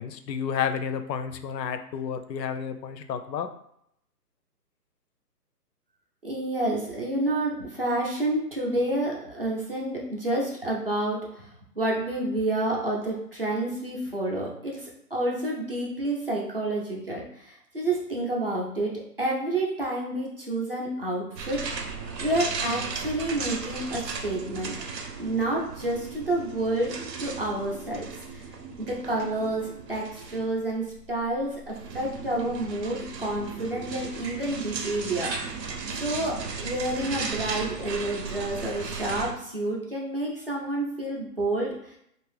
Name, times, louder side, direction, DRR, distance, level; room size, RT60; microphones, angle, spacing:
voice 1, 0.0-3.5, left 7 dB, 85° left, 8 dB, 0.6 m, -31 dB
voice 2, 6.2-21.7 22.2-24.8 25.2-28.4 28.8-35.6 36.0-42.0, right 1 dB, 40° right, -3 dB, 0.5 m, -29 dB
Industiral Ladder, 21.4-39.3, right 4 dB, 80° right, 0.7 m, -36 dB
2.7 x 2.4 x 3.2 m, 0.73 s
hypercardioid pair, 170°, 49 cm